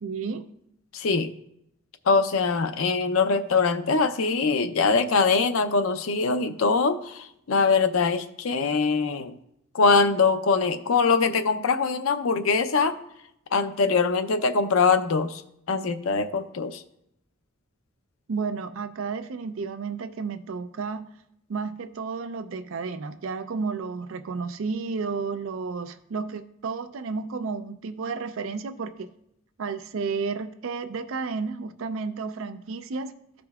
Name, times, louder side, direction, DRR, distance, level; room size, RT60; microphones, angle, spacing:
voice 1, 0.0-0.5 18.3-21.1 21.5-29.1 29.6-33.1, right 4 dB, 70° right, 10 dB, 0.4 m, -32 dB
voice 2, 0.9-1.3 2.1-9.3 9.7-13.0 13.5-15.4 15.7-16.8, left 4 dB, 85° left, 9 dB, 0.6 m, -23 dB
14.0 x 5.1 x 2.3 m, 0.77 s
head